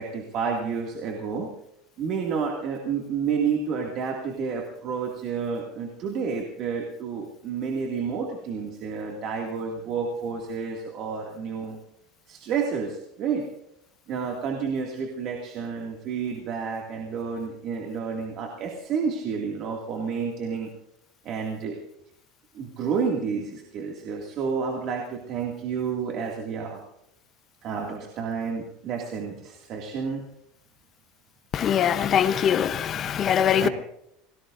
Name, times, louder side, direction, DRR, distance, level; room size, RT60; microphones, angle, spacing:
voice 1, 0.0-1.5 2.0-11.8 12.3-13.5 14.1-20.7 21.2-21.8 22.5-26.8 27.6-30.2 33.6-33.7, right 6 dB, 40° right, 2.3 m, -30 dB
voice 2, 31.5-33.7, left 9 dB, 30° left, 0.8 m, -22 dB
28.5 x 19.0 x 2.6 m
cardioid pair, 165°, 0 cm